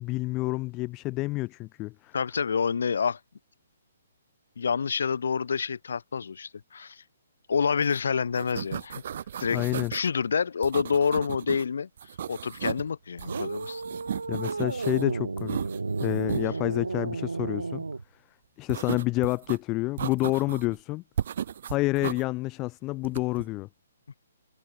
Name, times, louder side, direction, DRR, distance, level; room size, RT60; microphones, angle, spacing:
voice 1, 0.0-2.1 9.5-9.9 14.3-15.6 16.0-17.8 18.6-21.0 21.7-23.7, left 21 dB, 25° left, 0.7 m, -29 dB
voice 2, 2.1-3.2 4.6-7.0 7.5-9.0 9.4-9.6 9.9-13.8, left 6 dB, 70° left, 1.7 m, -28 dB
sound 1, 7.8-8.0 8.2-10.1 10.6-11.6 12.0-12.9 13.2-15.0 15.4-16.5 18.7-19.6 20.0-20.8 21.2-22.2 23.0-23.5, right 9 dB, 55° right, 3.3 m, -35 dB
sound 2, 13.2-18.0, right 3 dB, 90° right, 0.6 m, -32 dB
hypercardioid pair, 140°, 0 cm